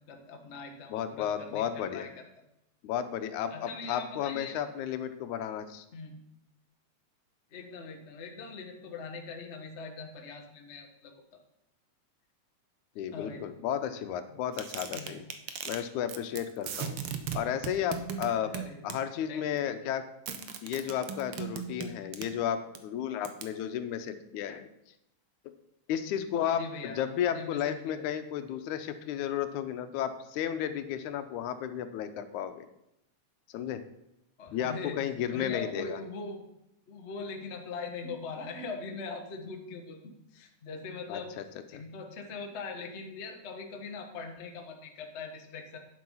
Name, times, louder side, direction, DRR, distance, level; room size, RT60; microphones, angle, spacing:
voice 1, 0.1-2.1 3.5-4.6 5.9-6.2 7.5-11.2 13.1-13.5 14.9-15.2 18.4-19.0 19.3-19.7 26.5-28.0 34.4-35.0 35.3-36.4 36.9-41.3 41.7-45.8, left 4 dB, 55° left, 3 dB, 0.7 m, -41 dB
voice 2, 0.9-2.1 2.8-5.9 13.0-15.3 15.7-17.0 17.3-18.5 18.8-20.0 20.6-24.7 25.9-32.7 33.5-33.8 34.5-36.0 41.1-41.4 41.7-41.8, left 9 dB, 80° left, 9 dB, 2.2 m, -33 dB
sound 1, 14.5-15.8 16.1-16.4 16.6-19.0 20.3-22.3 22.8-22.9 23.3-23.5, right 8 dB, 70° right, 1.3 m, -37 dB
9.6 x 7.7 x 5.5 m, 0.85 s
omnidirectional pair, 3.4 m